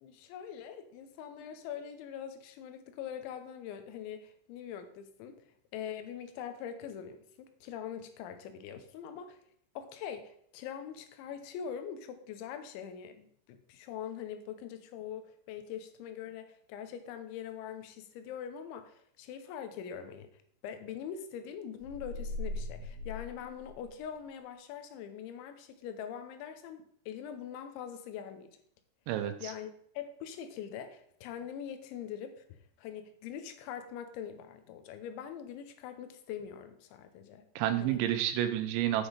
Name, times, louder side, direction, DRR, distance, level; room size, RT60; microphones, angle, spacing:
voice 1, 0.0-5.4 5.7-9.4 9.8-20.3 20.6-28.5 29.4-37.5 37.8-38.0, left 8 dB, 80° left, 8 dB, 3.2 m, -43 dB
sound 1, 21.8-24.2, left 2 dB, 40° right, 2.0 m, -40 dB
voice 2, 29.1-29.5 37.6-39.1, right 12 dB, 80° right, 9 dB, 3.0 m, -30 dB
8.0 x 5.8 x 5.1 m, 0.65 s
omnidirectional pair, 5.4 m